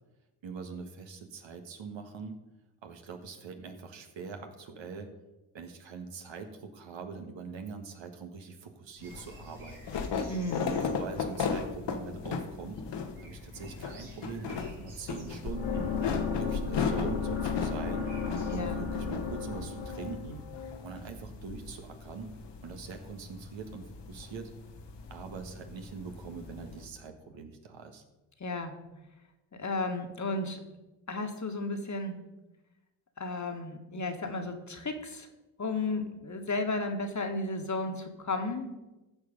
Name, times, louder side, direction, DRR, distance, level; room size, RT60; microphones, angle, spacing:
voice 1, 0.4-2.3 2.8-5.1 5.5-9.8 10.6-12.8 13.2-16.0 16.4-18.1 18.5-20.4 20.8-22.3 22.6-24.5 25.1-28.0, right 5 dB, 60° right, 5 dB, 1.6 m, -43 dB
sound 1, 9.0-26.9, left 5 dB, 55° left, 1.3 m, -38 dB
sound 2, 9.0-18.6, right 2 dB, 90° right, 3.0 m, -55 dB
voice 2, 10.3-10.7 18.5-18.8 28.4-28.8 29.5-30.6 31.1-32.2 33.2-35.3 35.6-38.7, left 2 dB, 35° left, 5 dB, 1.7 m, -33 dB
sound 3, 15.5-21.5, left 5 dB, 75° left, 1.9 m, -34 dB
14.5 x 4.9 x 5.3 m, 1.0 s
hypercardioid pair, 50°, 50 cm